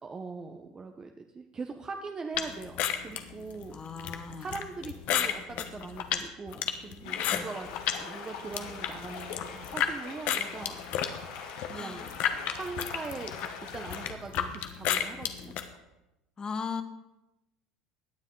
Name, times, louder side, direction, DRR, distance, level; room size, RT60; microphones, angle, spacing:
voice 1, 0.0-3.8 4.3-10.8 11.7-12.1 12.5-13.3 13.7-15.5, right 4 dB, 25° right, 4 dB, 1.0 m, -41 dB
sound 1, 2.3-8.0 8.4-9.9 10.3-15.6, left 10 dB, 60° left, 1.2 m, -32 dB
voice 2, 3.7-4.5 7.3-7.5 11.7-12.0 16.4-16.8, left 5 dB, 25° left, 9 dB, 1.2 m, -37 dB
sound 2, 7.0-14.1, left 6 dB, 85° left, 2.6 m, -43 dB
17.0 x 9.7 x 3.9 m, 0.96 s
supercardioid pair, 90°, 3 cm